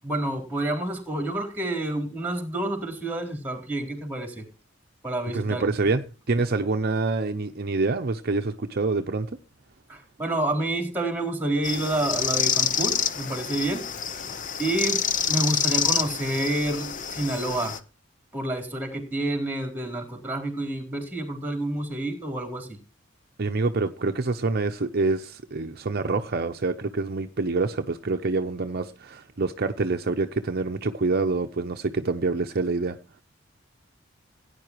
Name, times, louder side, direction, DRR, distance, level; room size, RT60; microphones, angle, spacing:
voice 1, 0.0-4.5 5.0-5.7 9.9-13.9 14.6-17.8 18.3-22.8, right 1 dB, 10° right, 3.9 m, -29 dB
voice 2, 5.3-9.3 23.4-33.0, right 3 dB, 50° right, 0.7 m, -26 dB
sound 1, 11.6-17.8, left 7 dB, 40° left, 0.9 m, -27 dB
17.0 x 9.9 x 3.0 m
head